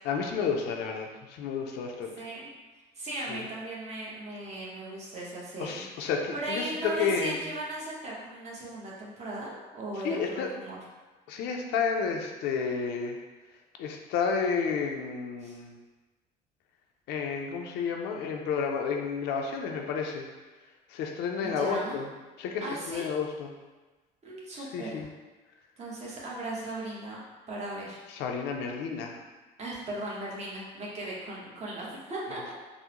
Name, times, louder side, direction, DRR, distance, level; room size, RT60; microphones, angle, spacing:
voice 1, 0.0-2.1 3.3-3.4 5.6-7.4 10.0-10.5 11.3-13.2 13.8-15.7 17.1-20.3 20.9-22.1 22.4-23.5 24.5-25.1 28.1-29.2, left 5 dB, 85° left, 2 dB, 0.4 m, -31 dB
voice 2, 2.2-2.5 3.0-5.9 6.3-10.8 15.4-15.6 21.4-22.0 22.6-23.1 24.2-25.0 25.8-27.2 27.5-28.0 29.6-32.4, right 1 dB, 40° right, -5 dB, 0.9 m, -37 dB
3.6 x 2.0 x 2.8 m, 1.2 s
cardioid pair, 110°, 17 cm